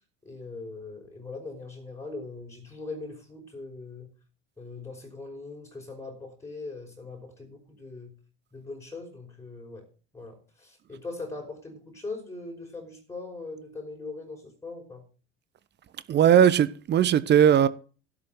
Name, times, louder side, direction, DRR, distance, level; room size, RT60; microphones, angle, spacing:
voice 1, 0.2-4.1 4.6-8.1 8.5-9.9 10.1-15.0, left 3 dB, 10° left, 5.3 m, -40 dB
voice 2, 16.1-17.7, right 9 dB, 30° right, 0.9 m, -19 dB
12.5 x 6.1 x 9.0 m
figure-of-eight pair, 65°, 34 cm